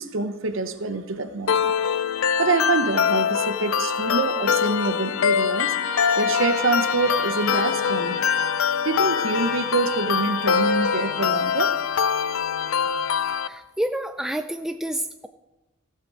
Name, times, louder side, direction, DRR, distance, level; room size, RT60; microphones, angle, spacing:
voice 1, 0.0-1.7 2.4-5.7 6.2-8.2 8.8-11.7, right 3 dB, 65° right, 9 dB, 0.8 m, -26 dB
sound 1, 1.5-13.5, left 7 dB, 75° left, 0.5 m, -24 dB
Trumpet, 5.6-12.1, left 3 dB, 40° left, 2.1 m, -34 dB
sound 2, 6.9-12.9, equal, 30° right, 1.7 m, -49 dB
voice 2, 13.2-15.3, right 1 dB, ahead, 7 dB, 0.3 m, -29 dB
16.0 x 5.7 x 6.5 m, 1.0 s
head